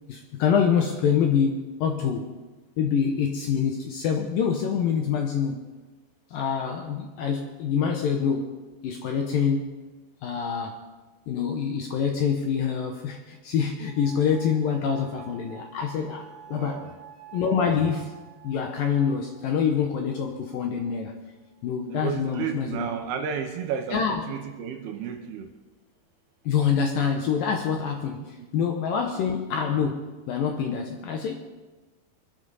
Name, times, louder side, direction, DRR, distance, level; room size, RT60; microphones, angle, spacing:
voice 1, 0.1-2.4 2.8-5.6 6.3-8.5 8.8-9.7 10.2-10.8 11.3-16.9 17.3-21.2 21.6-22.9 23.9-24.2 26.5-31.3, left 7 dB, 70° left, 3 dB, 2.2 m, -26 dB
sound 1, 13.9-20.8 21.6-22.2, right 9 dB, 30° right, 2.6 m, -49 dB
voice 2, 16.5-16.9 21.9-25.5 28.2-28.5, right 8 dB, 75° right, 5 dB, 2.6 m, -33 dB
24.0 x 12.5 x 4.1 m, 1.2 s
omnidirectional pair, 5.0 m